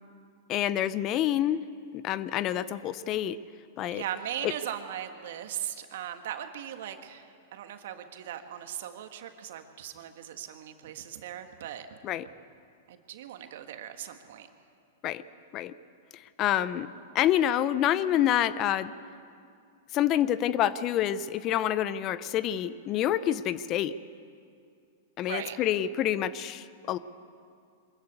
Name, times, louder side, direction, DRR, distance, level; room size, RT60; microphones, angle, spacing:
voice 1, 0.5-1.6 1.9-3.4 3.8-4.0 4.4-4.5 12.0-12.3 15.0-15.2 15.5-15.7 16.4-16.9 17.1-18.9 19.9-24.0 25.2-27.0, left 11 dB, 35° left, 16 dB, 0.7 m, -27 dB
voice 2, 3.9-11.9 12.9-14.5 25.2-25.6, right 10 dB, 65° right, 7 dB, 1.6 m, -39 dB
23.5 x 14.0 x 8.2 m, 2.4 s
hypercardioid pair, 115°, 0 cm